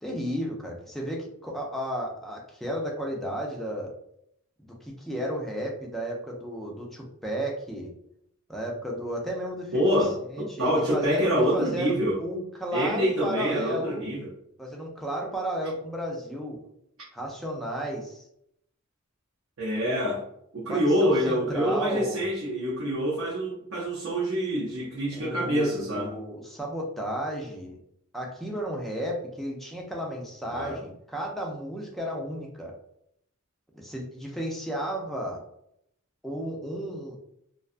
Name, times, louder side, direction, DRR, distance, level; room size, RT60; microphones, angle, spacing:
voice 1, 0.0-3.9 4.8-7.9 8.5-9.8 10.3-11.9 12.2-14.0 14.6-16.6 17.1-18.3 20.7-22.2 25.1-27.8 28.1-32.7 33.7-35.4 36.2-37.2, right 1 dB, ahead, -2 dB, 0.4 m, -33 dB
voice 2, 9.7-12.2 12.7-14.3 19.6-20.3 20.5-26.2 30.5-30.8, equal, 70° right, -6 dB, 0.7 m, -26 dB
2.6 x 2.2 x 2.4 m, 0.74 s
head